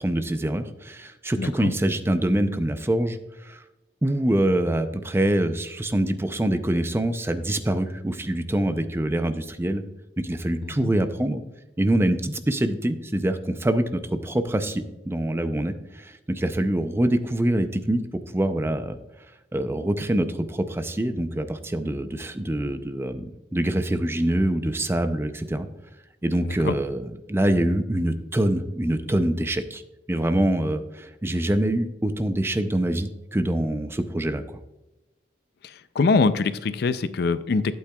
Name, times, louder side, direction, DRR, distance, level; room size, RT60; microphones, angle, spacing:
voice 1, 0.0-3.6 4.0-9.8 10.2-11.4 11.8-18.0 18.3-19.0 19.5-25.7 26.2-29.8 30.1-34.6, right 1 dB, 15° right, 9 dB, 0.5 m, -25 dB
voice 2, 1.4-1.7 10.8-10.9 26.4-26.8 36.0-37.7, left 4 dB, 60° left, 14 dB, 0.4 m, -23 dB
12.0 x 8.5 x 2.3 m, 0.98 s
head